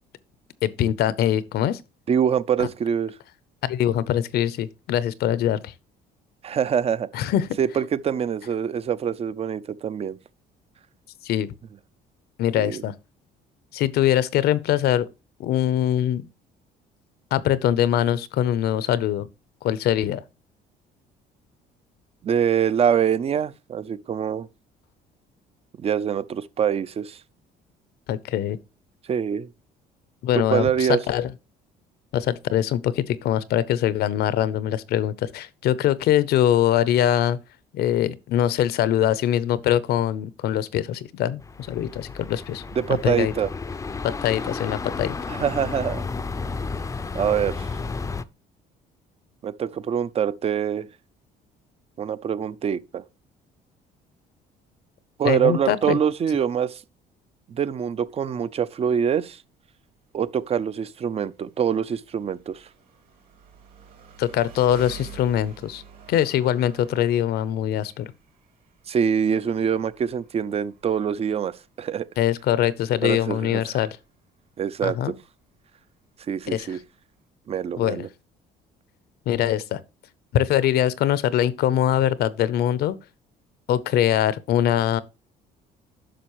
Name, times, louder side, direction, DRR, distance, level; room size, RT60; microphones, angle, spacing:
voice 1, 0.6-1.8 2.6-2.7 3.6-5.7 7.1-7.5 11.2-11.5 12.4-12.9 13.7-15.1 15.4-16.2 17.3-19.3 19.6-20.2 28.1-28.6 30.2-31.3 32.1-37.4 37.7-42.6 43.0-43.3 44.0-45.2 55.2-56.0 64.2-65.8 66.1-68.1 72.2-74.0 74.8-75.1 76.5-76.7 77.8-78.1 79.3-79.8 80.3-83.0 83.7-85.0, left 11 dB, 70° left, 0.7 m, -23 dB
voice 2, 2.1-3.1 6.4-7.1 7.6-10.2 12.6-12.8 22.2-24.5 25.8-27.2 29.1-29.5 30.3-31.0 42.8-43.5 45.3-46.0 47.1-47.7 49.4-50.9 52.0-53.0 55.2-56.8 57.5-59.4 60.1-62.7 68.9-72.1 73.0-73.8 74.6-75.1 76.3-76.8 77.5-78.1, right 8 dB, 35° right, 0.5 m, -24 dB
sound 1, 41.4-48.2, left 4 dB, 20° left, 0.5 m, -32 dB
Engine, 57.9-77.3, right 6 dB, 60° right, 3.5 m, -50 dB
10.0 x 6.2 x 3.0 m
cardioid pair, 110°, 17 cm